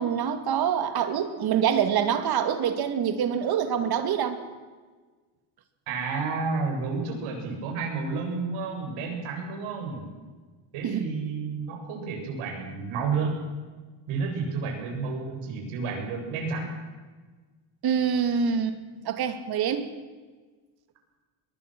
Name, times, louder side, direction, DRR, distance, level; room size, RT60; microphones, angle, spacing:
voice 1, 0.0-4.4 10.8-11.1 17.8-18.8 19.0-19.9, right 8 dB, 50° right, 8 dB, 2.5 m, -25 dB
voice 2, 5.9-10.1 10.7-13.4 14.1-16.7, right 4 dB, 85° right, 1 dB, 7.9 m, -31 dB
23.5 x 22.5 x 6.2 m, 1.4 s
cardioid pair, 165°, 49 cm